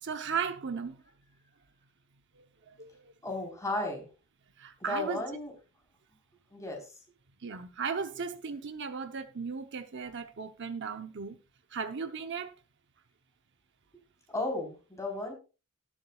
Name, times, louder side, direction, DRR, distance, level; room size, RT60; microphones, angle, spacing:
voice 1, 0.0-1.0 2.4-3.4 4.6-5.2 7.4-11.4 11.7-12.5, right 5 dB, 55° right, 0.8 m, -36 dB
voice 2, 3.2-4.1 4.8-5.5 6.5-6.9 14.3-15.3, left 2 dB, 15° left, 4.1 m, -34 dB
18.5 x 7.4 x 2.4 m
head